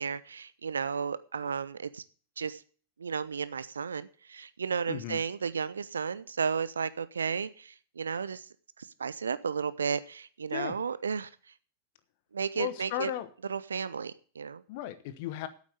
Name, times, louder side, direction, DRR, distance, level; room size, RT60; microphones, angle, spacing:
voice 1, 0.0-2.0 2.4-2.6 3.0-8.5 9.0-11.3 12.3-13.1 13.5-14.6, right 6 dB, 70° right, 16 dB, 0.6 m, -33 dB
voice 2, 4.9-5.2 10.5-10.8 12.5-13.3 14.7-15.5, left 12 dB, 50° left, 13 dB, 1.2 m, -35 dB
8.9 x 8.3 x 8.1 m, 0.43 s
figure-of-eight pair, 90°, 0 cm